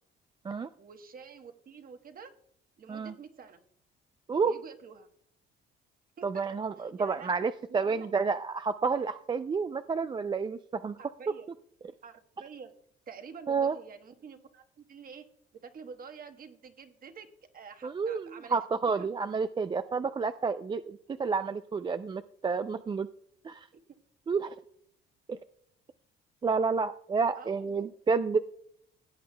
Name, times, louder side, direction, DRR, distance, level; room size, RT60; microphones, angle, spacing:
voice 1, 0.8-2.3 2.8-3.6 4.4-5.1 6.2-6.4 6.8-7.3 7.7-8.1 11.0-11.5 12.0-12.7 13.1-15.2 15.6-17.3 17.5-18.6 19.0-19.1 23.7-23.8 27.3-27.9, right 6 dB, 45° right, 7 dB, 1.2 m, -48 dB
voice 2, 6.2-11.0 13.5-13.8 17.8-23.1 23.4-23.7 24.3-24.5 25.3-25.4 26.4-28.4, right 5 dB, 20° right, 11 dB, 0.3 m, -30 dB
16.5 x 8.4 x 2.2 m, 0.70 s
supercardioid pair, 85°, 21 cm